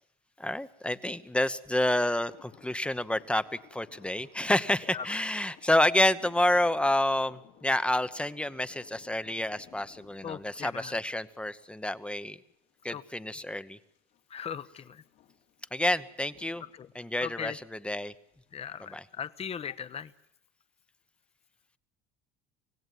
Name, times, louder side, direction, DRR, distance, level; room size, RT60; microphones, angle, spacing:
voice 1, 0.4-3.4 3.7-12.4 12.8-13.8 15.7-16.6 16.9-18.1 18.8-19.0, left 1 dB, 5° left, 14 dB, 0.9 m, -29 dB
sound 1, 2.3-20.2, left 10 dB, 70° left, 2.8 m, -60 dB
voice 2, 10.2-10.9 12.9-13.0 14.3-15.0 16.7-16.9 17.2-17.6 18.5-20.1, left 8 dB, 30° left, 14 dB, 1.0 m, -38 dB
25.5 x 17.0 x 9.3 m, 0.75 s
cardioid pair, 110°, 19 cm